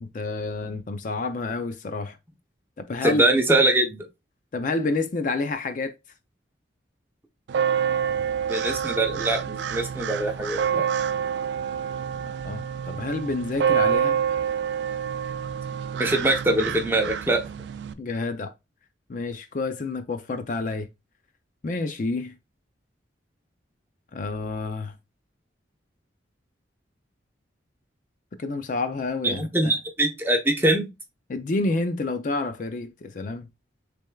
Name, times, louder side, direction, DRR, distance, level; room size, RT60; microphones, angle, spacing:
voice 1, 0.0-2.2 2.8-3.2 4.5-5.9 12.4-14.2 18.0-18.5 19.1-20.9 21.6-22.3 24.1-24.9 28.4-29.7 31.3-33.5, left 3 dB, 45° left, 0.4 m, -29 dB
voice 2, 3.0-4.0 8.5-10.9 15.9-17.4 29.2-30.9, right 2 dB, 10° right, 0.8 m, -23 dB
sound 1, 7.5-17.9, right 8 dB, 70° right, 0.3 m, -27 dB
6.2 x 3.4 x 2.3 m
head